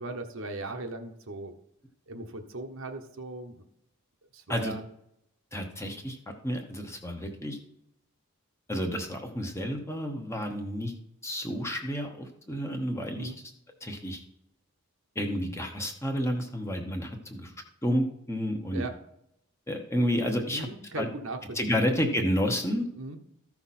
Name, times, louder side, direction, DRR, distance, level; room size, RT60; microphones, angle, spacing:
voice 1, 0.0-1.5 2.1-3.6 4.3-4.8 13.2-13.4 18.7-19.0 20.5-21.9 23.0-23.2, right 2 dB, 60° right, 5 dB, 1.0 m, -38 dB
voice 2, 5.5-6.2 6.4-7.6 8.7-10.9 11.2-13.3 13.8-14.2 15.1-17.5 17.8-18.8 19.7-20.7 20.9-21.1 21.5-22.8, equal, 10° left, 3 dB, 1.0 m, -30 dB
14.0 x 5.9 x 4.2 m, 0.78 s
head